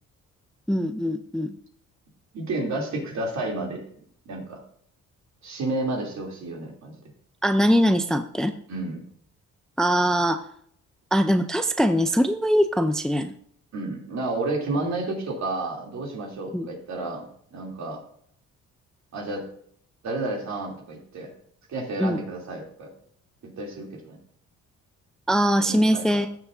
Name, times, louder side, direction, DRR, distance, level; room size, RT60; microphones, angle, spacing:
voice 1, 0.7-1.6 7.4-8.5 9.8-10.4 11.1-13.3 16.5-16.7 22.0-22.2 25.3-26.3, equal, ahead, 9 dB, 0.5 m, -22 dB
voice 2, 2.3-3.8 4.2-4.6 5.4-6.9 8.7-9.1 13.7-18.0 19.1-19.5 20.0-21.3 21.7-22.9 23.4-24.2 25.6-26.2, right 2 dB, 65° right, -1 dB, 3.1 m, -31 dB
15.5 x 6.9 x 2.7 m, 0.63 s
cardioid pair, 90°, 30 cm